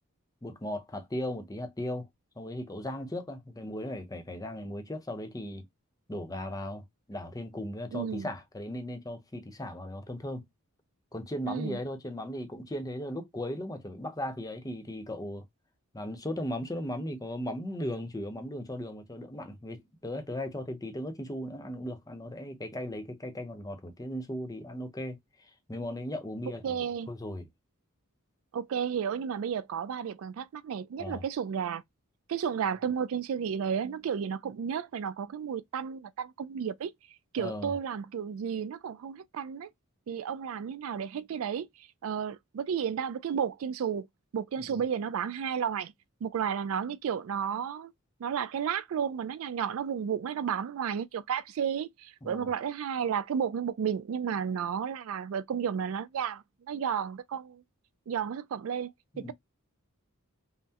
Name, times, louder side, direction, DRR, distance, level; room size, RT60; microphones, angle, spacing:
voice 1, 0.4-2.1 2.4-5.6 6.1-10.4 11.1-15.4 15.9-26.8 27.1-27.5 31.0-31.2 37.4-37.7 44.6-44.8 52.2-52.5 59.1-59.3, left 1 dB, 15° left, 0.7 m, -37 dB
voice 2, 7.9-8.3 11.5-11.8 26.6-27.1 28.5-31.8 32.3-36.9 37.3-39.7 40.1-44.1 44.3-45.9 46.2-47.9 48.2-57.6 58.1-59.3, right 7 dB, 65° right, 0.3 m, -32 dB
5.5 x 2.1 x 2.8 m
head